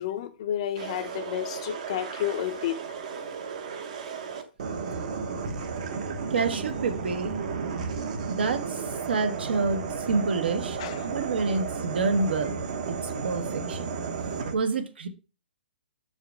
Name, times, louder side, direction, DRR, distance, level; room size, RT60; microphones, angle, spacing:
voice 1, 0.0-2.8 10.8-11.0, left 11 dB, 30° left, 0.6 m, -31 dB
sound 1, 0.8-14.6, right 5 dB, 40° right, 0.9 m, -33 dB
voice 2, 6.3-7.4 8.3-12.6 12.8-13.9 14.5-15.1, right 4 dB, 60° right, 1.2 m, -28 dB
6.7 x 4.9 x 4.4 m
hypercardioid pair, 170°, 6 cm